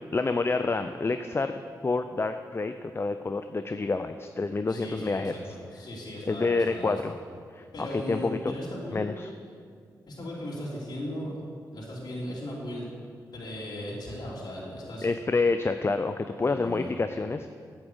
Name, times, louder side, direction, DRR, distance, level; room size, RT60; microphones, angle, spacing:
voice 1, 0.1-5.3 6.3-7.1 7.5-8.5 8.9-9.3 15.0-17.5, left 3 dB, 30° left, 9 dB, 0.5 m, -28 dB
voice 2, 4.7-7.0 7.7-9.1 10.1-11.3 11.7-12.9 13.3-15.1 16.4-16.9, equal, 60° left, -6 dB, 3.3 m, -37 dB
8.9 x 7.2 x 8.0 m, 2.1 s
cardioid pair, 55°, 8 cm